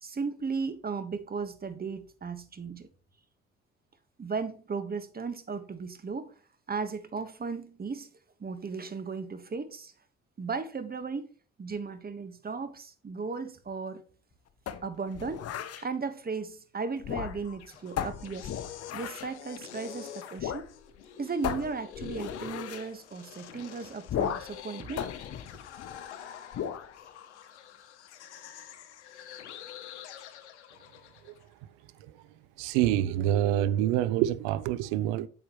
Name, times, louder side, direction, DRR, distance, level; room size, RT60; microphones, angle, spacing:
voice 1, 0.0-2.9 4.2-6.3 6.7-8.1 8.4-9.9 10.4-11.3 11.6-14.0 14.8-15.5 15.8-18.5 18.9-20.7 21.2-25.1, right 4 dB, 25° right, 1.3 m, -36 dB
sound 1, 14.7-15.9 17.0-17.6 18.0-19.4 20.4-20.7 21.0-21.1 21.4-22.9 24.1-24.6 25.0-26.1 26.5-26.9, left 9 dB, 45° left, 0.9 m, -35 dB
sound 2, 17.3-31.4, left 9 dB, 90° left, 0.9 m, -46 dB
voice 2, 32.6-35.3, right 12 dB, 75° right, 0.7 m, -26 dB
8.5 x 6.8 x 3.1 m
hypercardioid pair, 55°, 33 cm